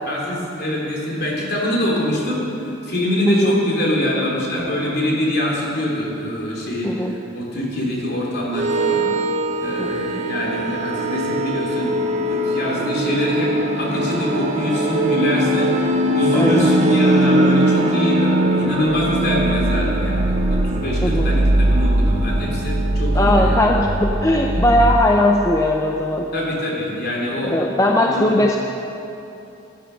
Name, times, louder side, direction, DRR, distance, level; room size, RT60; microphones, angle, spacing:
voice 1, 0.1-9.0 9.6-23.6 26.3-27.6 27.9-28.4, left 1 dB, 50° left, -3 dB, 3.2 m, -24 dB
voice 2, 6.8-7.1 9.8-10.0 16.3-16.7 21.0-21.3 23.2-26.3 27.4-28.6, left 1 dB, 15° left, 1 dB, 0.5 m, -18 dB
sound 1, 8.5-25.1, right 1 dB, 35° right, 0.9 m, -20 dB
15.5 x 10.5 x 5.7 m, 2.9 s
head